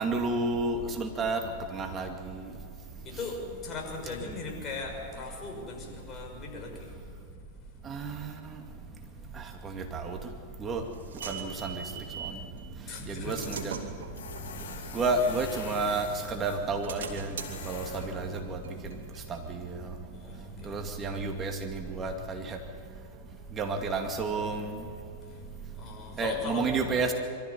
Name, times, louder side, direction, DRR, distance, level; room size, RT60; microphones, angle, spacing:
voice 1, 0.0-1.4 1.7-2.1 7.9-8.3 9.6-10.2 10.6-10.8 11.3-11.8 13.1-13.8 14.9-17.3 17.7-18.6 19.3-19.7 20.7-22.6 23.6-24.7 26.2-27.1, right 3 dB, 25° right, 4 dB, 2.3 m, -30 dB
voice 2, 3.0-7.0 12.8-13.6 14.7-15.3 20.1-21.0 25.2-25.4 25.7-26.7, left 3 dB, 30° left, 1 dB, 5.9 m, -39 dB
sound 1, 10.2-12.4 13.0-16.1 16.5-19.9, right 6 dB, 75° right, 2.6 m, -43 dB
Tools, 13.3-19.4, left 7 dB, 65° left, 6.4 m, -45 dB
24.0 x 14.0 x 10.0 m, 2.6 s
hypercardioid pair, 105°, 0 cm